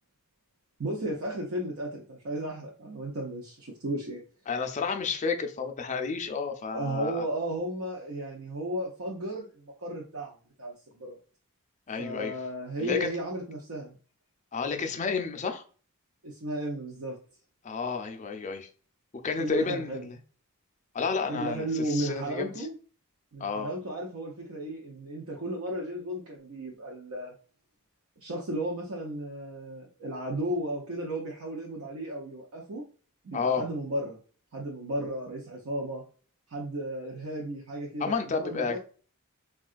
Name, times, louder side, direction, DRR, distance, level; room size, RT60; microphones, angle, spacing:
voice 1, 0.8-4.2 6.7-11.2 12.0-14.0 16.2-17.2 19.4-20.1 21.3-22.8 23.3-27.3 28.2-32.8 33.2-34.2 34.5-36.0 36.5-38.8, right 1 dB, 70° right, 0.6 m, -34 dB
voice 2, 4.5-7.3 11.9-12.4 12.8-13.1 14.5-15.6 17.6-18.7 19.2-20.1 20.9-22.7 23.4-23.7 33.3-33.6 38.0-38.8, left 5 dB, 30° left, 0.4 m, -31 dB
3.7 x 2.3 x 2.4 m
head